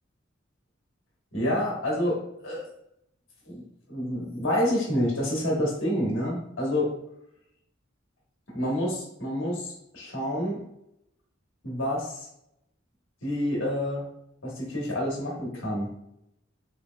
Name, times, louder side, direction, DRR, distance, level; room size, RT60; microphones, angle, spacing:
voice 1, 1.3-2.7 3.5-3.6 3.9-6.9 8.5-10.6 11.6-12.3 13.2-14.0 14.4-15.9, equal, 65° left, -3 dB, 1.2 m, -28 dB
3.2 x 3.0 x 2.2 m, 0.80 s
head